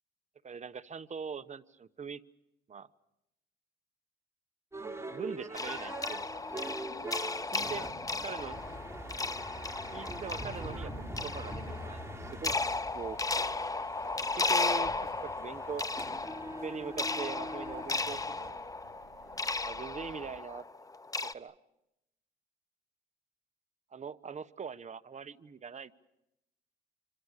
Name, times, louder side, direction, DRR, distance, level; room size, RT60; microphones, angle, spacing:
voice 1, 0.4-2.2 2.7-2.9 4.8-6.8 7.5-7.9 8.2-8.6 9.9-10.9 11.2-12.5 12.9-13.6 14.3-15.8 16.6-18.7 19.6-20.6 21.2-21.6 23.9-26.1, right 6 dB, 35° right, 12 dB, 1.1 m, -42 dB
sound 1, 4.7-18.5, right 1 dB, 15° right, 3.9 m, -44 dB
sound 2, 5.6-21.3, left 3 dB, 15° left, 0.9 m, -35 dB
sound 3, 5.6-20.4, right 8 dB, 75° right, 3.5 m, -60 dB
26.5 x 26.0 x 6.6 m, 0.88 s
cardioid pair, 90°, 20 cm